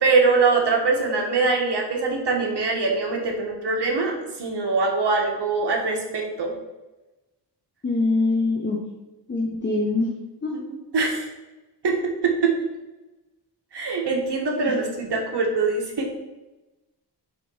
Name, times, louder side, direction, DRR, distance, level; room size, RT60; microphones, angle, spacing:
voice 1, 0.0-4.1 4.4-6.5 10.5-10.6 10.9-11.2 11.8-11.9 12.2-12.5 13.7-16.1, right 4 dB, 65° right, 0 dB, 1.5 m, -23 dB
voice 2, 7.8-8.8 9.3-10.1 10.4-10.5 14.6-14.7, left 3 dB, 25° left, 0 dB, 0.8 m, -23 dB
5.7 x 3.7 x 5.5 m, 1.1 s
wide cardioid pair, 105°, 43 cm